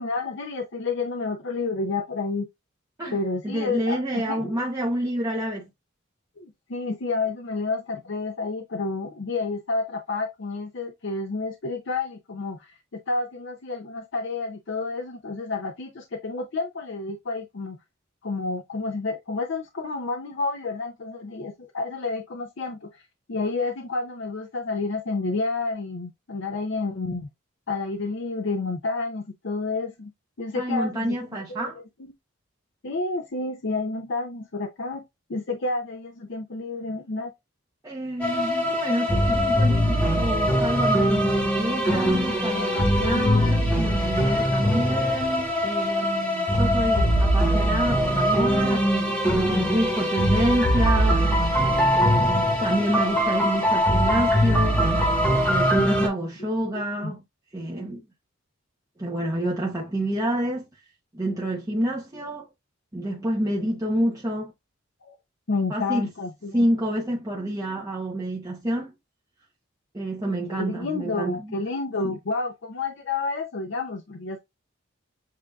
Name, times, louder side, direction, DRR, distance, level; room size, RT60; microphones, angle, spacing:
voice 1, 0.0-2.5 3.1-4.6 6.4-12.8 13.1-17.8 18.2-22.9 23.3-27.3 27.7-30.1 30.4-31.2 31.5-31.8 32.8-35.0 35.3-37.3 42.5-43.5 55.6-55.7 57.0-57.1 65.0-65.2 65.5-66.6 70.5-74.4, left 3 dB, 60° left, 0.6 m, -30 dB
voice 2, 3.4-5.6 30.5-31.8 37.8-51.2 51.9-54.9 55.5-57.2 57.5-58.0 59.0-60.7 61.1-62.5 62.9-64.5 65.7-66.1 66.5-68.9 69.9-71.5, right 1 dB, 15° right, 0.8 m, -28 dB
sound 1, 38.2-56.1, equal, 5° left, 1.3 m, -22 dB
7.5 x 2.6 x 2.3 m
head